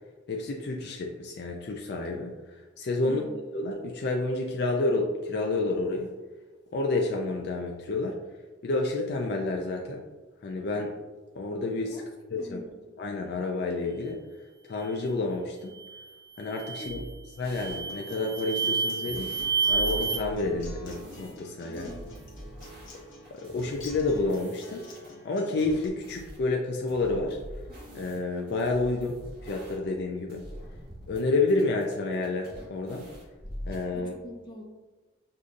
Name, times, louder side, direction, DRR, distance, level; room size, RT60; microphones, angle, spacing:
voice 1, 0.3-2.3 2.8-3.2 3.5-6.1 6.7-8.2 8.6-10.0 10.4-10.9 11.4-12.0 12.3-12.6 13.0-14.2 14.7-15.8 16.4-17.0 17.4-19.3 19.7-21.9 23.3-24.8 25.2-27.4 27.9-30.4 31.1-33.1 33.7-34.1, left 2 dB, 55° left, 1 dB, 0.4 m, -29 dB
voice 2, 3.0-3.4 11.9-12.8 16.7-17.0 21.7-22.0 33.9-34.6, left 1 dB, 25° left, -2 dB, 0.7 m, -44 dB
sound 1, 15.7-16.0 16.5-17.0 17.5-20.2, right 5 dB, 25° right, 0.3 m, -29 dB
sound 2, 16.9-17.8 19.0-21.3 21.7-25.1 25.6-26.4 26.9-30.0 30.3-31.2 31.5-33.9, equal, 50° right, 1.4 m, -43 dB
Acoustic guitar, 17.9-25.9, left 1 dB, 70° left, 0.8 m, -48 dB
6.6 x 2.5 x 2.5 m, 1.2 s
head